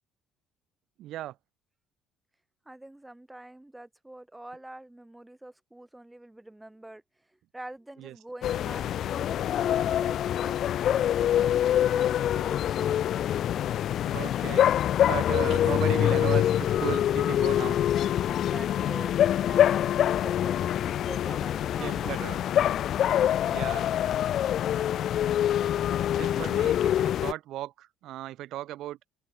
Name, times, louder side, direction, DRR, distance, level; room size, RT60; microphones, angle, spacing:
voice 1, 1.0-1.4 8.0-8.1 14.0-17.8 21.8-22.4 23.4-23.9 26.1-29.0, right 14 dB, 60° right, 7.4 m, -36 dB
voice 2, 2.7-7.0 7.5-13.3 18.3-22.6 26.1-26.6, right 1 dB, 5° right, 3.6 m, -45 dB
sound 1, 8.4-27.3, left 11 dB, 45° left, 0.4 m, -25 dB
open air
cardioid pair, 155°, 0 cm